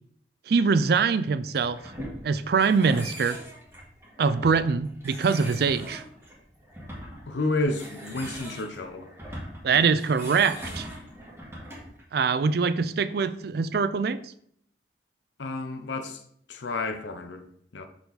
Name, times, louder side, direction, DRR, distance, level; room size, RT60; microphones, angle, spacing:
voice 1, 0.5-1.8 2.2-3.4 4.2-6.0 9.6-10.9 12.1-14.2, right 5 dB, 60° right, 0.4 m, -23 dB
sound 1, 1.5-12.0, equal, 15° right, 1.9 m, -41 dB
voice 2, 7.3-9.1 15.4-16.2 16.5-17.5 17.7-17.9, left 2 dB, 90° left, 0.7 m, -30 dB
6.8 x 4.4 x 4.0 m
head